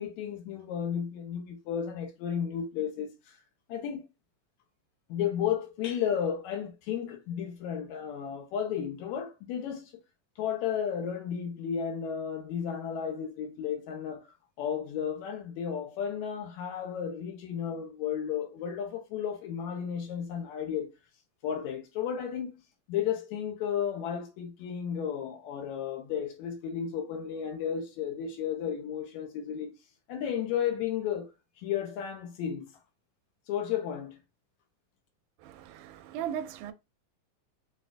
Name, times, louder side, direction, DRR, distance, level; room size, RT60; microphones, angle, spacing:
voice 1, 0.0-3.4 3.7-4.1 5.1-9.9 10.4-14.3 14.6-20.9 21.4-22.5 22.9-29.7 30.1-31.3 31.6-32.7 33.5-34.2, left 8 dB, 80° left, 1.9 m, -33 dB
voice 2, 35.4-36.7, right 9 dB, 85° right, 2.0 m, -37 dB
6.2 x 2.3 x 2.4 m
omnidirectional pair, 3.5 m